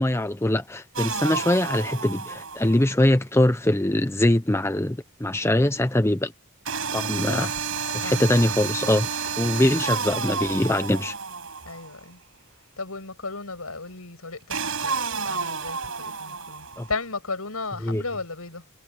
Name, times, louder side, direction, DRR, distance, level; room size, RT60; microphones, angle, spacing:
voice 1, 0.0-6.3 6.9-7.5 7.9-11.1 16.8-16.9 17.8-18.0, left 1 dB, 10° left, 0.7 m, -23 dB
sound 1, 0.9-2.9 6.6-11.9 14.5-16.9, right 5 dB, 65° right, 6.6 m, -30 dB
voice 2, 7.2-7.6 8.0-8.2 11.6-12.2 12.8-14.6 14.8-18.6, left 3 dB, 75° left, 6.1 m, -34 dB
head